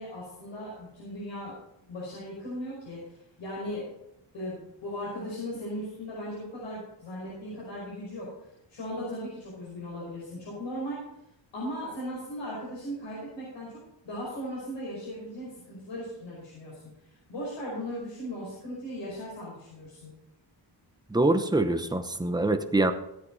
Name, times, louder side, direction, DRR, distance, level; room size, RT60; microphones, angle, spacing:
voice 1, 0.0-1.5 1.9-3.9 4.3-8.3 8.7-11.0 11.5-16.8 17.3-20.1, equal, 70° left, -6 dB, 5.6 m, -37 dB
voice 2, 21.1-22.9, right 2 dB, 10° right, 7 dB, 0.8 m, -24 dB
16.5 x 8.4 x 4.1 m, 0.83 s
wide cardioid pair, 155°, 47 cm